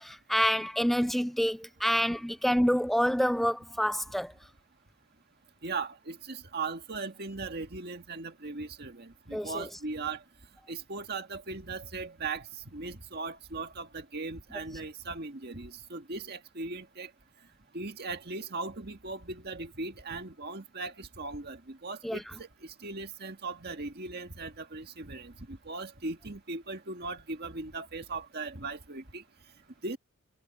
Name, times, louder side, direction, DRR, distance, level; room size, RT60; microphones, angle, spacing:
voice 1, 0.0-4.3 9.3-9.7 22.0-22.2, equal, ahead, 0.4 m, -27 dB
voice 2, 5.6-10.2 10.7-12.5 12.7-17.1 17.7-22.5 22.8-29.2 29.8-30.0, right 3 dB, 45° right, 1.9 m, -38 dB
head